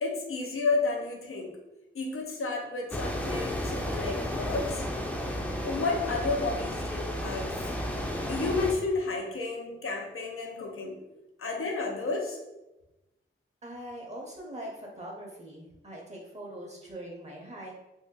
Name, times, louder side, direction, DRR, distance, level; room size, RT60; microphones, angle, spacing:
voice 1, 0.0-1.5 1.9-4.8 5.6-7.8 8.3-11.0 11.4-12.4, left 3 dB, 85° left, 1 dB, 0.6 m, -31 dB
sound 1, 2.9-8.7, equal, 5° left, 0.5 m, -33 dB
voice 2, 13.6-17.7, right 1 dB, 30° right, -2 dB, 0.8 m, -42 dB
2.7 x 2.5 x 3.6 m, 0.99 s
cardioid pair, 50°, 21 cm